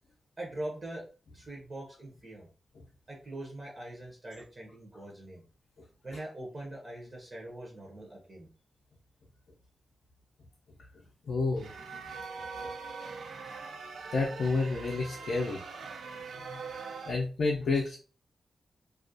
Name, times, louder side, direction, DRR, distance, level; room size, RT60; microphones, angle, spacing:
voice 1, 0.4-1.0 1.3-2.5 3.1-5.4 6.0-8.5, right 1 dB, 30° right, -1 dB, 0.6 m, -42 dB
voice 2, 11.3-11.7 14.1-15.6 17.1-18.0, left 3 dB, 65° left, -2 dB, 0.4 m, -29 dB
sound 1, 11.6-17.1, right 5 dB, 80° right, 0.3 m, -42 dB
2.3 x 2.1 x 2.5 m, 0.37 s
wide cardioid pair, 145°, 0 cm